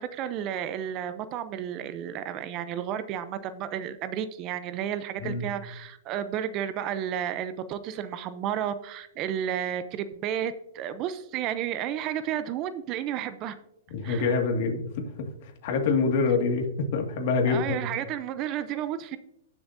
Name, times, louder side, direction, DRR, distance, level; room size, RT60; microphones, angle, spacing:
voice 1, 0.0-13.6 14.0-14.3 17.4-19.2, right 10 dB, 35° right, 12 dB, 0.6 m, -32 dB
voice 2, 13.9-17.8, left 4 dB, 55° left, 4 dB, 2.0 m, -26 dB
18.0 x 7.0 x 2.7 m, 0.80 s
hypercardioid pair, 150°, 0 cm